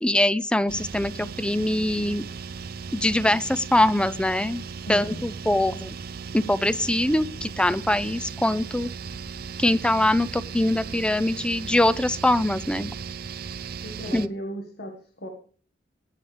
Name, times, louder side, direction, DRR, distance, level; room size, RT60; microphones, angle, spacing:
voice 1, 0.0-2.2 2.9-5.9 6.3-8.9 9.6-12.9 14.1-14.3, left 1 dB, 5° left, 16 dB, 0.4 m, -23 dB
sound 1, 0.7-14.3, right 5 dB, 55° right, 0.5 m, -37 dB
voice 2, 4.8-5.3 13.8-15.3, equal, 60° left, 4 dB, 1.6 m, -36 dB
18.0 x 9.2 x 3.4 m, 0.43 s
head